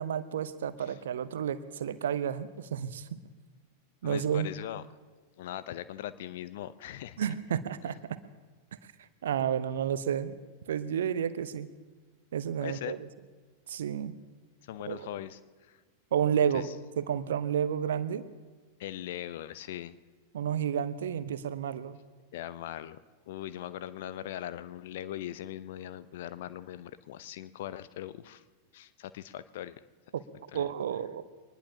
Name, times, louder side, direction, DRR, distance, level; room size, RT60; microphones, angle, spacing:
voice 1, 0.0-3.2 4.0-4.5 7.2-8.2 9.2-10.3 10.7-11.7 12.3-13.1 13.7-14.2 14.8-15.1 16.1-16.7 17.0-18.2 20.3-22.0 30.1-30.2 30.5-31.2, right 8 dB, 60° right, 14 dB, 0.8 m, -31 dB
voice 2, 4.0-4.8 5.4-7.3 12.6-12.9 14.7-15.4 15.7-15.8 16.5-16.7 18.8-20.0 22.3-23.0 23.3-28.4 28.7-29.8 30.5-30.7, left 12 dB, 55° left, 15 dB, 0.6 m, -40 dB
24.0 x 20.0 x 2.8 m, 1.4 s
figure-of-eight pair, 90°, 0 cm